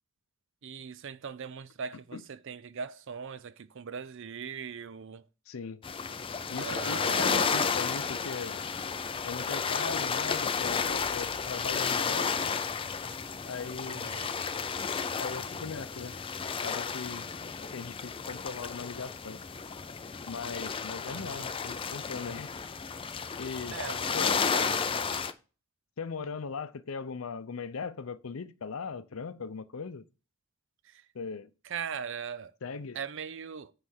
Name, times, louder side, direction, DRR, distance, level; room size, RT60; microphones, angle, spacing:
voice 1, 0.6-5.3 6.6-7.7 13.8-14.3 21.1-21.5 23.7-25.0 30.9-31.0 31.6-32.5 32.9-33.7, right 6 dB, 65° right, 0.5 m, -40 dB
voice 2, 5.5-5.8 6.5-8.6 9.2-12.5 13.5-14.1 15.2-16.2 16.6-17.3 17.6-19.4 20.3-22.5 23.3-23.8 24.1-24.4 26.0-30.1 31.1-31.5 32.6-33.0, left 5 dB, 75° left, 0.6 m, -39 dB
sound 1, 5.8-25.3, left 6 dB, 25° left, 0.5 m, -32 dB
9.4 x 3.3 x 6.4 m
head